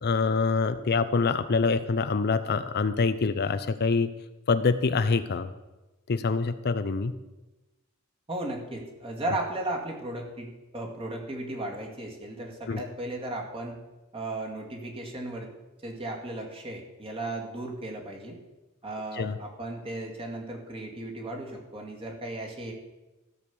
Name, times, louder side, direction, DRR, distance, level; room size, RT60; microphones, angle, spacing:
voice 1, 0.0-4.1 4.5-5.5 6.1-7.1 12.7-12.8 19.2-19.4, left 4 dB, 50° left, 11 dB, 0.5 m, -25 dB
voice 2, 8.3-13.8 14.1-15.5 15.8-18.4 18.8-22.7, right 1 dB, 25° right, 0 dB, 2.1 m, -35 dB
13.5 x 6.4 x 7.0 m, 1.1 s
head